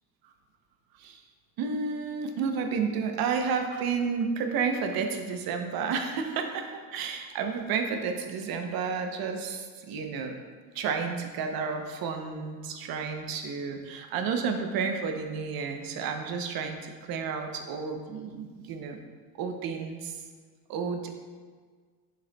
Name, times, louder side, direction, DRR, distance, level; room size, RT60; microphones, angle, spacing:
voice 1, 1.6-10.3 10.7-19.0 19.3-20.2 20.7-21.1, right 5 dB, 55° right, 5 dB, 0.7 m, -31 dB
7.6 x 6.8 x 2.2 m, 1.5 s
cardioid pair, 170°, 44 cm